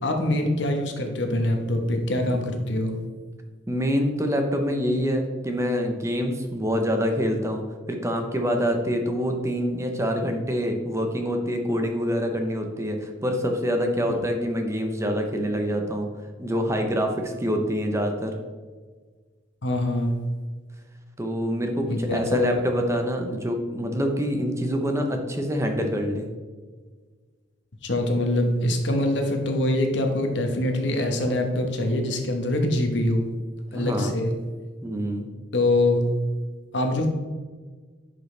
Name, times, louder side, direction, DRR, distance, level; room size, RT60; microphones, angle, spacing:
voice 1, 0.0-3.0 14.1-14.2 19.6-20.1 21.9-22.5 27.8-33.2 33.7-34.4 35.5-36.1 36.7-37.1, left 1 dB, 65° left, 4 dB, 1.2 m, -24 dB
voice 2, 3.7-16.1 16.4-18.3 21.2-26.3 33.7-34.1 34.8-35.3, equal, 15° right, 4 dB, 0.8 m, -26 dB
10.5 x 5.3 x 3.3 m, 1.5 s
head